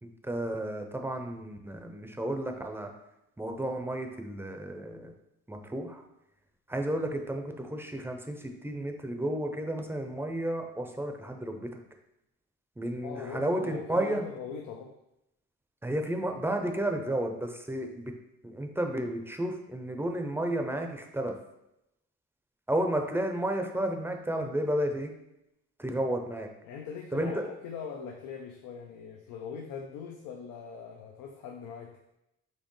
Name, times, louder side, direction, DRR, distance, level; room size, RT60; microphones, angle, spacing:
voice 1, 0.0-2.9 3.4-5.1 5.5-6.0 6.7-11.8 12.8-14.2 15.8-18.1 18.4-21.4 22.7-25.1 25.8-26.5 27.1-27.4, right 1 dB, 10° right, 4 dB, 0.5 m, -32 dB
voice 2, 13.0-14.9 26.6-32.0, left 6 dB, 85° left, 2 dB, 0.5 m, -41 dB
4.4 x 3.1 x 3.1 m, 0.86 s
cardioid pair, 90°, 30 cm